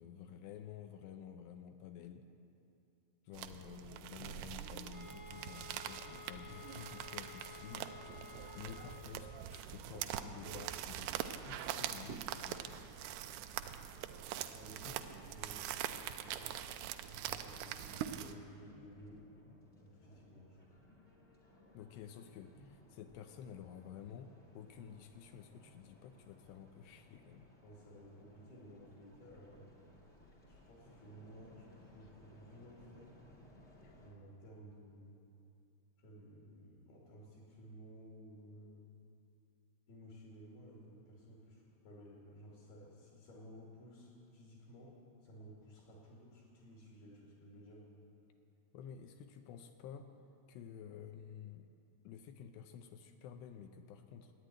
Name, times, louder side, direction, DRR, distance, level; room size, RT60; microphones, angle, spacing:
voice 1, 0.0-2.3 3.3-7.9 8.6-12.9 14.8-14.9 21.7-27.5 33.8-34.0 48.7-50.1 50.5-51.7 52.0-54.3, left 8 dB, 80° left, 7 dB, 2.7 m, -51 dB
sound 1, 3.3-18.3, right 11 dB, 85° right, 2.3 m, -43 dB
sound 2, 4.9-9.1, left 5 dB, 15° right, 1.2 m, -53 dB
voice 2, 14.5-15.7 16.0-16.7 17.1-19.2 19.8-20.7 27.6-29.8 30.4-33.2 34.0-35.2 36.0-38.9 39.9-47.9, equal, 65° left, -4 dB, 4.2 m, -56 dB
sound 3, 17.9-34.1, left 1 dB, 30° left, 1.3 m, -63 dB
14.5 x 9.7 x 9.1 m, 2.6 s
omnidirectional pair, 5.2 m